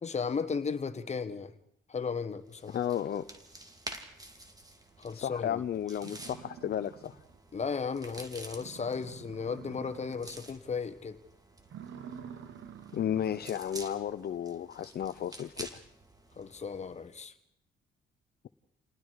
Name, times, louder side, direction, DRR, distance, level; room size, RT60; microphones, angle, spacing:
voice 1, 0.0-1.5 1.9-2.8 5.0-5.6 7.5-11.2 16.4-17.3, left 5 dB, 35° left, 10 dB, 1.5 m, -35 dB
sound 1, 2.4-17.1, right 1 dB, 20° right, 2.5 m, -50 dB
voice 2, 2.7-3.3 5.1-7.2 12.9-15.8, left 9 dB, 55° left, 10 dB, 0.8 m, -33 dB
sound 2, 6.0-7.4 7.7-7.8 8.2-8.3 8.5-10.5 10.8-11.1 11.6-13.6, right 8 dB, 70° right, 1.8 m, -48 dB
28.0 x 19.0 x 4.8 m, 0.73 s
cardioid pair, 90°, 20 cm